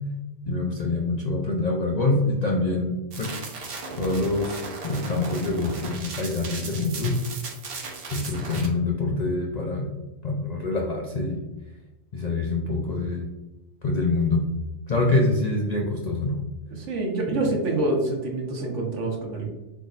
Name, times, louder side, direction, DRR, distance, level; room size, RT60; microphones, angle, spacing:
voice 1, 0.5-3.3 4.0-7.2 8.1-9.9 10.2-11.4 12.1-13.3 13.8-14.5 14.9-16.4 17.3-17.4, left 2 dB, 55° left, 0 dB, 0.4 m, -25 dB
sound 1, 3.1-8.7, right 3 dB, 55° right, 0.9 m, -36 dB
voice 2, 16.7-19.5, right 2 dB, 75° right, 0 dB, 1.2 m, -26 dB
3.9 x 3.6 x 2.4 m, 1.1 s
omnidirectional pair, 1.2 m